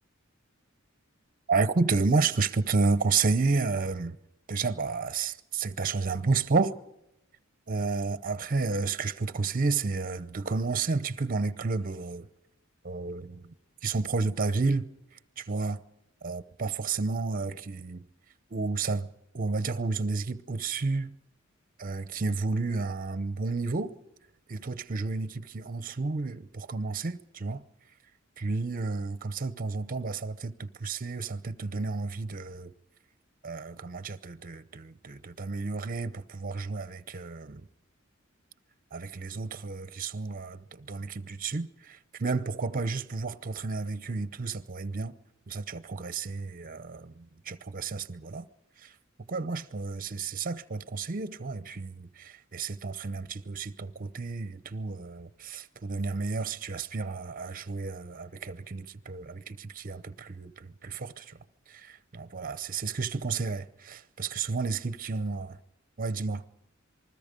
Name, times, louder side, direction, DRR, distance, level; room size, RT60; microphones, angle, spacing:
voice 1, 1.5-4.2 4.5-6.8 7.7-12.3 12.8-13.5 13.8-14.9 15.4-15.8 16.2-18.1 18.5-19.1 19.3-21.2 21.8-24.0 24.5-27.6 28.4-32.7 33.4-37.7 38.9-45.2 45.5-48.5 48.8-48.9 49.3-61.4 61.7-65.6 66.0-66.4, right 4 dB, 45° right, 0.8 m, -31 dB
27.0 x 20.5 x 5.3 m
head